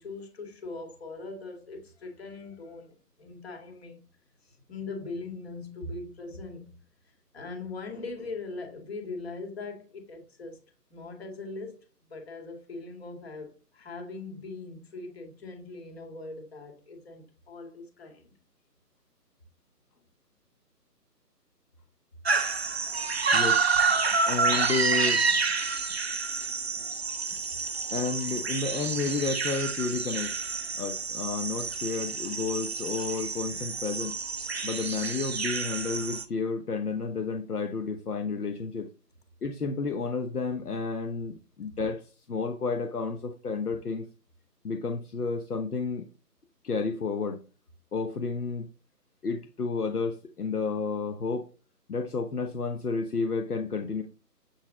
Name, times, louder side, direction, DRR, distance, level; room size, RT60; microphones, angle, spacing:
voice 1, 0.0-4.0 4.4-6.8 7.3-10.6 10.9-11.8 12.1-18.3, left 3 dB, 40° left, 2.3 m, -41 dB
sound 1, 22.3-36.2, right 4 dB, 40° right, 0.7 m, -29 dB
voice 2, 24.3-25.2 27.9-30.3 30.8-34.2 34.6-38.9 39.4-42.0 42.3-44.1 44.6-46.1 46.6-47.4 47.9-48.7 49.2-51.5 51.9-54.0, left 4 dB, 65° left, 1.1 m, -31 dB
8.1 x 4.2 x 3.8 m
figure-of-eight pair, 150°, 49 cm